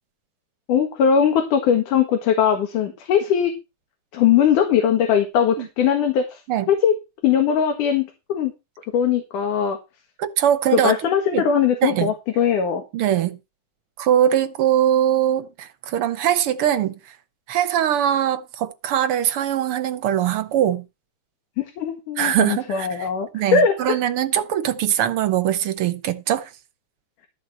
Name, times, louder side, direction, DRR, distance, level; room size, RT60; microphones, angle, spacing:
voice 1, 0.7-3.5 4.1-6.4 6.7-7.0 7.2-8.5 8.9-9.8 10.7-12.8 21.8-24.0, left 8 dB, 90° left, 3.1 m, -20 dB
voice 2, 10.2-11.0 11.3-11.4 11.8-12.1 12.9-13.4 14.0-17.0 17.5-20.8 22.2-23.1 23.3-26.5, right 10 dB, 65° right, 1.4 m, -21 dB
13.0 x 4.6 x 7.9 m
omnidirectional pair, 3.5 m